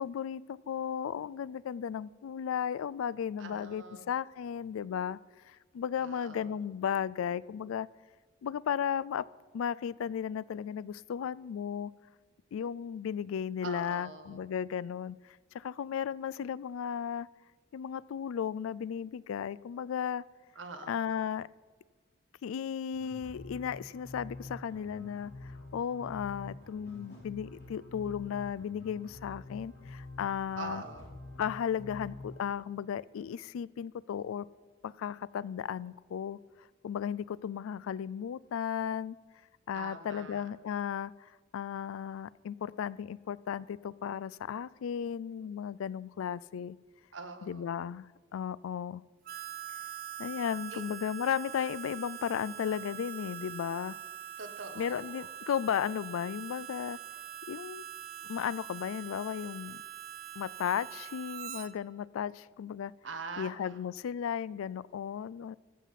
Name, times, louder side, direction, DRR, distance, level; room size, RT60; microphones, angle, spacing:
voice 1, 0.0-5.2 5.5-7.9 8.4-9.3 9.5-11.9 12.5-17.3 17.7-20.2 20.9-21.5 22.4-30.8 31.4-34.5 34.8-39.2 39.7-46.8 47.4-49.0 50.2-54.0 54.8-57.0 57.5-57.8 58.3-59.8 60.4-62.9 63.4-65.6, left 8 dB, 90° left, 21 dB, 0.3 m, -35 dB
voice 2, 3.4-4.1 6.0-6.5 13.6-14.4 20.5-21.1 30.6-31.2 39.7-40.5 47.1-47.9 50.7-50.8 54.4-55.3 63.0-63.5, right 3 dB, 65° right, 7 dB, 1.2 m, -44 dB
sound 1, 22.9-32.4, left 2 dB, 55° left, 4.5 m, -47 dB
Harmonica, 49.2-61.7, right 11 dB, 45° right, 0.6 m, -44 dB
14.0 x 5.7 x 7.5 m, 1.4 s
head